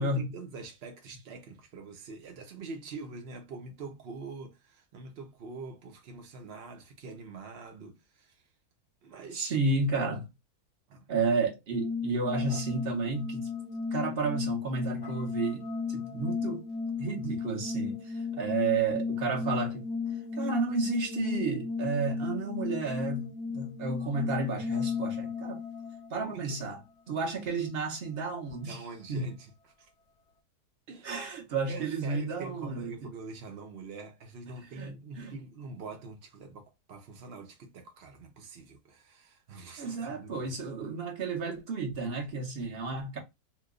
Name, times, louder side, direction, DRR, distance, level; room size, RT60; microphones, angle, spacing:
voice 1, 0.0-8.4 9.0-9.6 10.9-11.1 26.2-26.6 28.7-29.5 29.8-29.9 30.9-31.2 31.7-40.4, right 4 dB, 80° right, 0.5 m, -45 dB
voice 2, 9.3-10.3 11.1-13.5 13.9-16.7 17.0-19.9 20.4-25.6 26.1-26.8 27.1-28.8 29.1-29.3 31.0-33.1 34.8-35.3 39.8-43.2, right 4 dB, 45° right, 0.9 m, -32 dB
sound 1, 11.7-26.2, left 5 dB, 75° left, 1.1 m, -35 dB
3.0 x 2.2 x 3.6 m
omnidirectional pair, 1.8 m